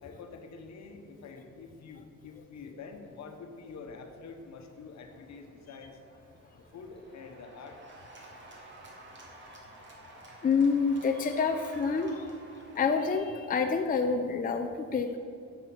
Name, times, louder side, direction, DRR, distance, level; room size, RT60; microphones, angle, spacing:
voice 1, 0.0-5.9 6.7-7.8, left 4 dB, 65° left, 5 dB, 1.2 m, -46 dB
Cheering / Applause, 3.5-13.1, right 1 dB, 40° right, 2.1 m, -52 dB
voice 2, 10.4-12.4 12.7-15.2, left 5 dB, 30° left, 6 dB, 0.6 m, -27 dB
8.0 x 6.8 x 6.0 m, 2.4 s
cardioid pair, 90°, 30 cm